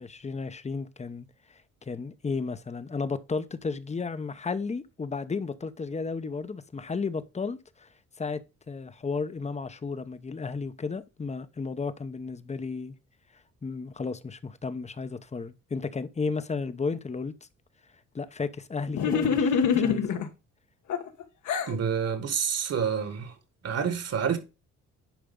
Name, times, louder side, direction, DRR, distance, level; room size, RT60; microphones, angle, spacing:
voice 1, 0.0-7.9 8.2-12.9 13.6-17.3 18.1-20.0, left 4 dB, 25° left, 0.8 m, -33 dB
sound 1, 18.9-20.3 20.9-21.7, left 6 dB, 70° left, 1.3 m, -25 dB
voice 2, 21.7-23.3 23.6-24.4, right 7 dB, 55° right, 2.0 m, -28 dB
10.0 x 5.0 x 3.8 m
cardioid pair, 90°, 30 cm